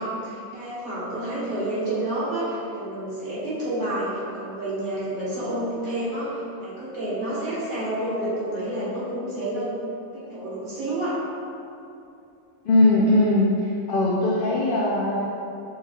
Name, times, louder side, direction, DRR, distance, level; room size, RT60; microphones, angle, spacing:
voice 1, 0.0-9.8 10.1-11.1, right 1 dB, 80° right, -11 dB, 2.0 m, -29 dB
voice 2, 12.6-13.6 13.9-15.2, left 2 dB, 85° left, -4 dB, 0.4 m, -20 dB
6.4 x 3.1 x 2.2 m, 2.7 s
omnidirectional pair, 1.5 m